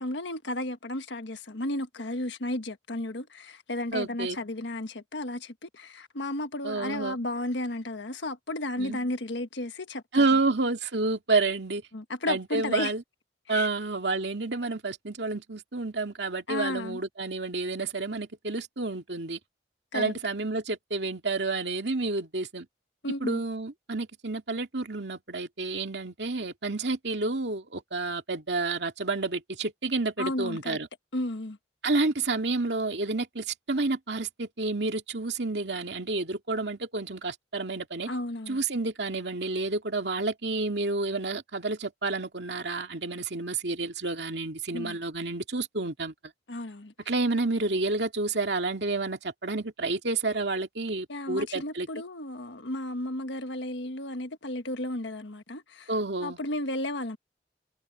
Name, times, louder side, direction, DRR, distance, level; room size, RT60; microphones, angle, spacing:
voice 1, 0.0-10.2 11.9-12.9 13.5-13.7 16.5-17.0 19.9-20.1 23.0-23.4 30.2-30.8 31.1-31.6 38.1-38.6 44.7-45.0 46.5-46.9 51.1-55.9 56.2-57.2, left 1 dB, 90° left, 1.5 m, -33 dB
voice 2, 3.9-4.4 6.6-7.2 8.8-9.0 10.1-11.8 12.3-13.0 13.5-19.4 19.9-22.7 23.2-30.9 31.8-38.1 38.5-46.1 47.1-51.9 55.9-56.4, right 3 dB, 75° right, 2.3 m, -29 dB
head